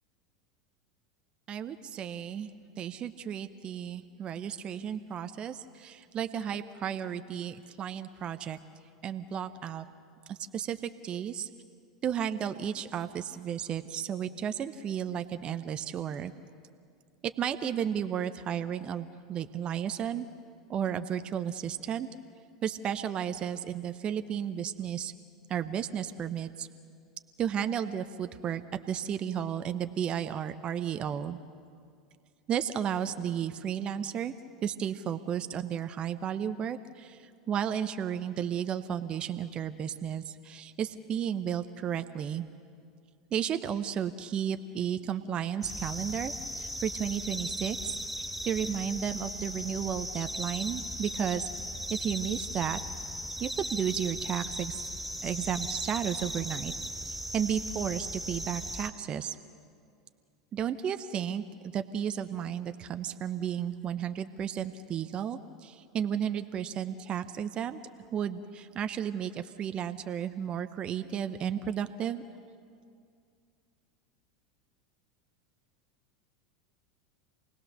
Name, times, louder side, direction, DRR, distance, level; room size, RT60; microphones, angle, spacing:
voice 1, 1.5-2.5 2.8-8.6 9.0-9.8 10.3-11.5 12.0-16.3 17.4-20.3 20.7-22.1 22.6-25.1 25.5-26.7 27.4-28.6 28.9-31.4 32.5-34.3 34.6-37.2 37.5-42.4 43.3-47.8 48.4-51.5 51.9-52.8 53.4-54.8 55.2-56.7 57.3-59.4 60.5-67.8 68.1-72.2, right 9 dB, 35° right, 9 dB, 0.9 m, -33 dB
sound 1, 45.6-58.9, equal, ahead, 3.1 m, -37 dB
28.0 x 19.0 x 6.7 m, 2.3 s
hypercardioid pair, 85°, 3 cm